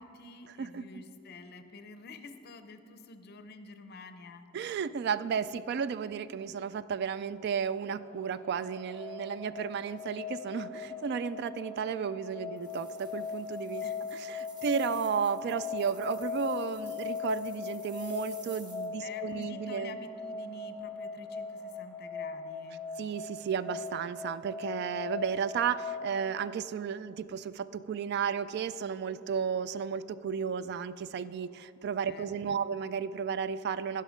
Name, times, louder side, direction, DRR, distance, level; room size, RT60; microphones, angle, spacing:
voice 1, 0.0-4.5 13.8-14.0 14.6-14.9 19.0-22.8 32.0-32.6, left 3 dB, 55° left, 9 dB, 0.6 m, -49 dB
voice 2, 0.6-1.0 4.5-13.9 14.1-20.0 23.0-34.0, right 7 dB, 55° right, 15 dB, 0.3 m, -33 dB
sound 1, 8.0-26.1, left 6 dB, 10° left, 0.6 m, -39 dB
sound 2, 12.6-18.9, right 2 dB, 25° right, 1.3 m, -54 dB
16.0 x 5.6 x 5.0 m, 2.9 s
head